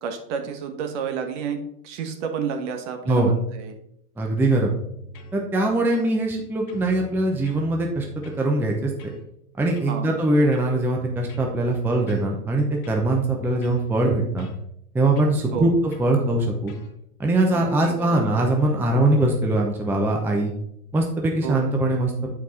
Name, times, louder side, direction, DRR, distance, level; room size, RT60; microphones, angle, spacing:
voice 1, 0.0-1.6 1.8-3.8 9.9-10.2 15.5-15.7 17.5-18.2 21.4-21.7, right 7 dB, 50° right, 5 dB, 1.3 m, -30 dB
voice 2, 4.2-4.7 5.3-8.1 8.4-8.9 9.6-14.5 14.9-15.7 16.0-16.7 17.2-20.5 20.9-22.3, right 2 dB, 5° right, 1 dB, 0.6 m, -22 dB
sound 1, 4.8-5.4 5.9-6.4 6.7-8.5 9.0-9.2 9.8-10.0 10.5-11.6 12.1-12.5 12.8-14.6 15.2-15.4 15.9-16.1 16.7-16.9, left 3 dB, 65° left, 1.4 m, -44 dB
8.3 x 4.7 x 4.1 m, 0.76 s
hypercardioid pair, 115°, 47 cm